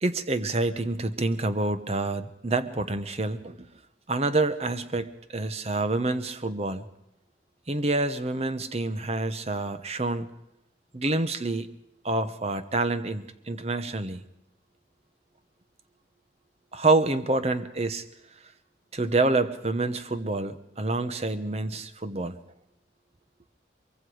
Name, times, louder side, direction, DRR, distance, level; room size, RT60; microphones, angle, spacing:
voice 1, 0.0-3.6 4.1-6.8 7.7-10.3 10.9-11.7 12.0-14.2 16.7-18.0 18.9-22.4, right 2 dB, 35° right, 11 dB, 1.0 m, -27 dB
23.5 x 22.5 x 5.0 m, 0.82 s
head